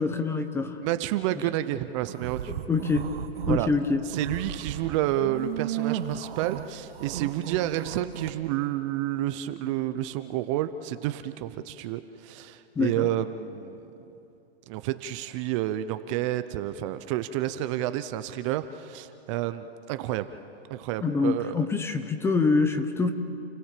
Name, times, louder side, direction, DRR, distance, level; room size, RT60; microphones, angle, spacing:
voice 1, 0.0-0.8 2.5-3.1 3.5-4.1 12.8-13.1 21.0-23.1, left 4 dB, 10° left, 8 dB, 0.7 m, -25 dB
voice 2, 0.8-2.5 3.5-3.7 4.1-13.8 14.7-20.3 20.7-21.6, right 13 dB, 30° right, 11 dB, 0.6 m, -30 dB
sound 1, 2.1-3.7 4.0-8.3, right 10 dB, 65° right, 1.3 m, -34 dB
29.0 x 16.0 x 7.5 m, 2.8 s
hypercardioid pair, 145°, 32 cm